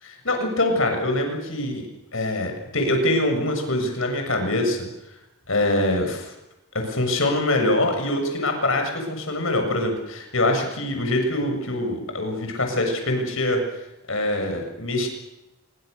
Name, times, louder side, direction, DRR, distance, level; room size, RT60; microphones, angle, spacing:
voice 1, 0.0-1.8 2.1-4.8 5.5-6.3 6.7-13.6 14.1-15.1, left 1 dB, 60° left, 4 dB, 7.0 m, -24 dB
26.0 x 24.0 x 6.9 m, 0.94 s
head